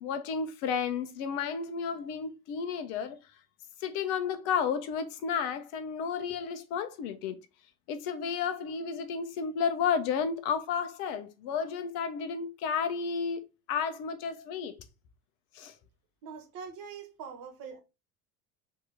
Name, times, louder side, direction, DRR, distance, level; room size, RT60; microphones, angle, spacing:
voice 1, 0.0-3.2 3.8-7.3 7.9-13.4 13.7-14.7 15.5-15.7, left 6 dB, 55° left, 1.0 m, -32 dB
voice 2, 16.2-17.8, right 6 dB, 50° right, 1.6 m, -43 dB
3.8 x 3.0 x 3.7 m
hypercardioid pair, 70°, 43 cm